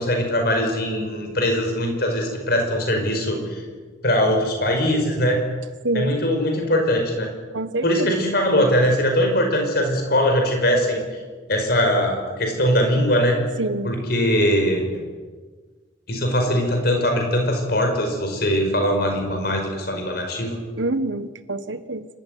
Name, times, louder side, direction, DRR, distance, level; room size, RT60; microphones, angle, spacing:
voice 1, 0.0-3.6 4.0-5.4 5.9-7.3 7.8-11.0 11.5-13.5 13.8-15.0 16.1-20.6, equal, 55° left, 3 dB, 5.4 m, -21 dB
voice 2, 5.8-6.2 7.5-8.1 13.6-14.0 20.8-22.1, right 2 dB, 80° right, 12 dB, 1.4 m, -26 dB
27.5 x 14.5 x 9.5 m, 1.4 s
head